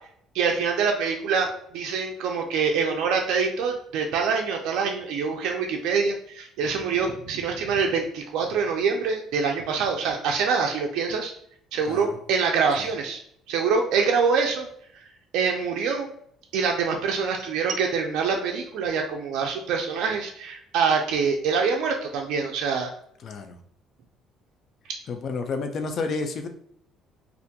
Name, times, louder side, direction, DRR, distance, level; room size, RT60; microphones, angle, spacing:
voice 1, 0.3-1.5 1.7-11.3 11.7-13.2 13.5-14.7 15.3-16.1 16.5-22.9, right 5 dB, 80° right, 2 dB, 0.3 m, -25 dB
voice 2, 11.8-12.2 12.8-12.9 23.2-23.6 25.1-26.5, left 4 dB, 45° left, 6 dB, 0.3 m, -30 dB
2.4 x 2.2 x 2.7 m, 0.67 s
cardioid pair, 125°, 0 cm